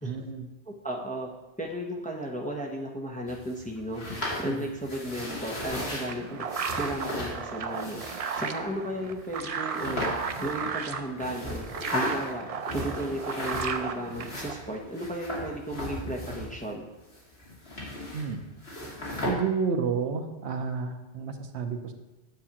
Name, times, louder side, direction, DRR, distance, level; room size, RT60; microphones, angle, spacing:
voice 1, 0.0-0.5 4.4-4.6 18.1-18.4 19.3-21.9, right 5 dB, 80° right, 6 dB, 1.0 m, -30 dB
voice 2, 0.7-1.3 1.6-4.0 4.4-6.5 6.8-8.0 8.4-10.1 10.4-11.7 11.9-12.4 12.8-16.9, right 1 dB, 10° left, -1 dB, 0.6 m, -34 dB
sound 1, 3.3-6.1 6.5-7.3 7.7-8.5 9.2-9.3 9.7-10.9 11.2-12.3 12.6-13.8 14.1-16.7 17.0-18.3 18.6-19.3, left 1 dB, 65° left, 2.5 m, -36 dB
sound 2, 5.5-14.8, right 6 dB, 55° right, 0.4 m, -35 dB
9.4 x 7.2 x 2.9 m, 1.0 s
omnidirectional pair, 1.1 m